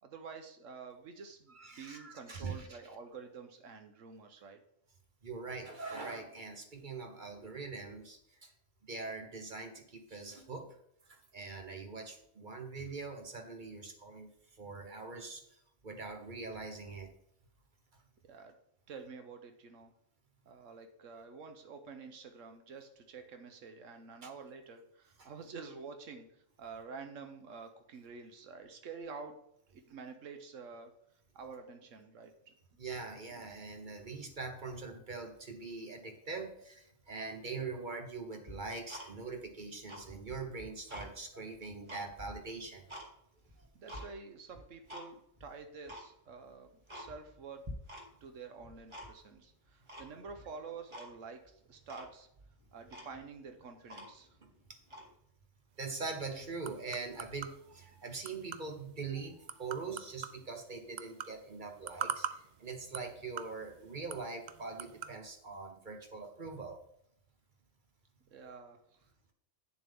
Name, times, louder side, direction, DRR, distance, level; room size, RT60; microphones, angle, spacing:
voice 1, 0.0-4.6 18.3-18.5 18.9-19.9 20.5-29.4 29.7-30.9 31.3-32.3 33.3-33.5 43.7-47.7 48.2-52.3 52.7-54.4 68.3-69.1, right 5 dB, 80° right, 6 dB, 1.2 m, -49 dB
voice 2, 1.5-2.8 5.2-8.5 8.8-10.8 11.1-14.3 14.6-15.4 15.8-17.1 24.2-24.3 25.2-25.3 32.8-42.8 54.7-54.8 55.8-66.8, right 4 dB, 40° right, 4 dB, 1.1 m, -43 dB
Tick-tock, 38.5-39.5 39.8-41.1 41.5-43.1 43.5-44.1 44.5-45.1 45.4-45.5 45.8-46.1 46.5-46.6 46.9-47.4 47.6-48.3 48.6-49.4 49.9-50.5 50.9-51.1 51.4-51.5 51.9-52.1 52.6-52.7 52.9-54.4 54.8-55.1, equal, 25° right, 1.4 m, -48 dB
sound 1, 55.7-65.2, right 8 dB, 65° right, 0.4 m, -45 dB
8.6 x 7.1 x 3.6 m, 0.74 s
omnidirectional pair, 1.3 m